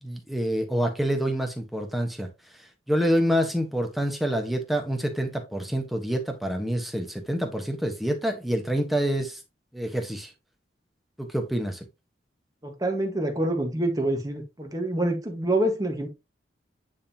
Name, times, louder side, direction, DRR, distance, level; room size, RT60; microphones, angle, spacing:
voice 1, 0.0-2.3 2.9-9.4 9.7-10.3 11.2-11.8, equal, ahead, 1.1 m, -27 dB
voice 2, 12.6-16.1, right 1 dB, 20° right, 1.3 m, -26 dB
9.4 x 3.7 x 2.8 m
head